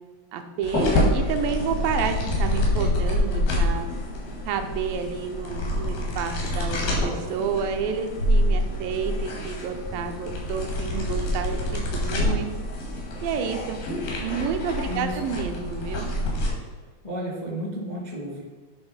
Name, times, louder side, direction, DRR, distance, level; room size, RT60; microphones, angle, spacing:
voice 1, 0.3-3.9 4.5-12.5 13.2-13.8 14.2-16.1, right 6 dB, 85° right, 5 dB, 2.4 m, -30 dB
sound 1, 0.6-16.5, left 1 dB, 85° left, 3.7 m, -26 dB
voice 2, 14.8-15.4 17.0-18.4, equal, 40° left, -5 dB, 0.6 m, -32 dB
9.9 x 3.6 x 5.6 m, 1.4 s
omnidirectional pair, 4.1 m